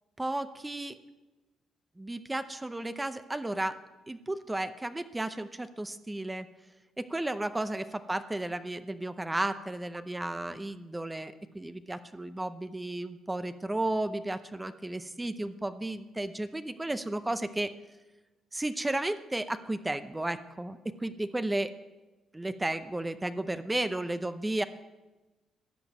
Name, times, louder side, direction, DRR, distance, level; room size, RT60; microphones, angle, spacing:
voice 1, 0.2-1.0 2.0-3.8 4.1-6.5 7.0-17.7 18.5-21.7 22.3-24.6, right 1 dB, 15° right, 11 dB, 0.7 m, -33 dB
13.0 x 6.9 x 9.4 m, 1.1 s
cardioid pair, 90°, 0 cm